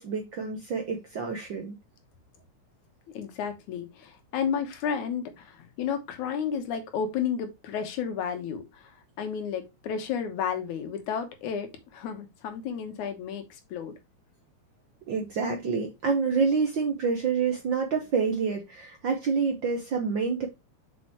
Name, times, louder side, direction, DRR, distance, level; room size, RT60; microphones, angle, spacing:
voice 1, 0.0-1.7 15.1-20.5, right 5 dB, 65° right, 1.2 m, -27 dB
voice 2, 3.1-8.9 9.2-13.5 13.7-13.9, left 7 dB, 85° left, 2.6 m, -32 dB
6.4 x 5.4 x 2.9 m
omnidirectional pair, 3.3 m